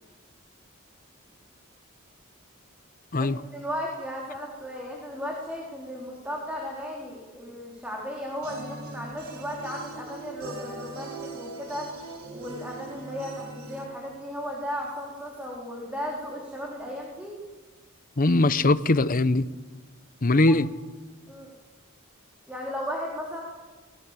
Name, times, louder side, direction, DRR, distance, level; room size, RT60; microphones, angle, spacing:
voice 1, 3.2-11.9 12.3-17.3 21.3-21.5 22.5-23.4, equal, 5° right, 4.1 m, -35 dB
sound 1, 8.4-13.9, right 3 dB, 90° right, 4.0 m, -41 dB
voice 2, 18.2-19.5 20.2-20.7, left 2 dB, 40° left, 0.8 m, -21 dB
26.5 x 21.0 x 7.6 m
head